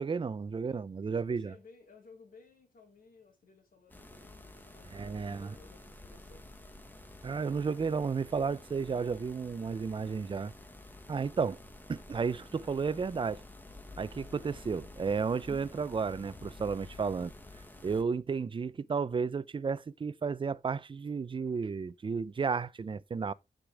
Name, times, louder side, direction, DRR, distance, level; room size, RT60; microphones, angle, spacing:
voice 1, 0.0-1.5 4.9-5.5 7.2-10.5 11.1-11.6 11.9-13.4 14.0-17.3 17.8-23.3, right 5 dB, 30° right, 0.4 m, -33 dB
voice 2, 1.1-6.7 13.7-13.9, left 4 dB, 60° left, 2.7 m, -58 dB
sound 1, 3.9-18.0, left 2 dB, 10° left, 1.2 m, -50 dB
15.0 x 5.0 x 3.4 m
wide cardioid pair, 165°, 17 cm